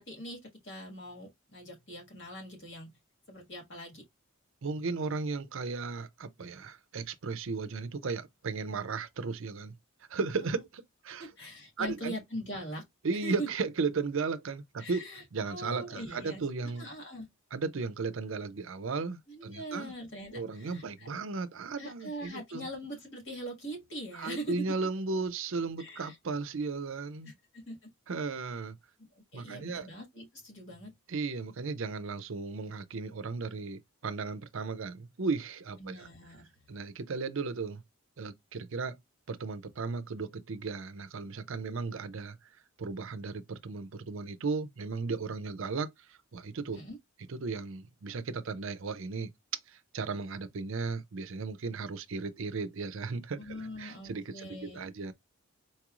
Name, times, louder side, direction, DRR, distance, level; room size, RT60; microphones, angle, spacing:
voice 1, 0.0-3.0 3.3-4.1 10.4-10.6 11.1-12.8 13.2-13.5 14.8-16.4 16.8-17.3 19.3-21.1 21.8-24.6 25.8-26.2 27.2-27.9 29.2-30.9 35.8-36.4 46.7-47.0 53.4-54.9, right 1 dB, 55° left, 1.8 m, -42 dB
voice 2, 4.6-9.7 10.1-11.3 11.8-12.2 13.0-16.9 17.5-19.9 20.3-22.7 24.1-27.3 28.1-28.8 29.3-29.9 31.1-36.1 36.7-37.8 38.2-39.0 39.3-42.4 42.8-46.8 47.3-49.3 49.7-55.1, right 4 dB, 60° right, 0.5 m, -35 dB
4.4 x 3.0 x 2.4 m
head